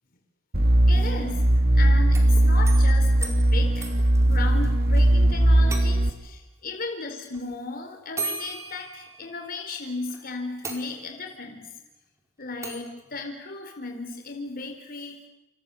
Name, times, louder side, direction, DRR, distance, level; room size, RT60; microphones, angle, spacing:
sound 1, 0.5-6.1, right 1 dB, 55° right, 2.1 m, -19 dB
voice 1, 0.9-11.7 12.4-15.2, left 3 dB, 50° left, 4 dB, 4.4 m, -35 dB
sound 2, 2.0-5.1 5.3-5.4 5.7-6.3 7.3-7.4 8.2-9.6 10.1-10.2 10.6-11.3 12.6-13.0, right 3 dB, 15° right, 4.6 m, -37 dB
28.5 x 28.5 x 7.2 m, 0.94 s
head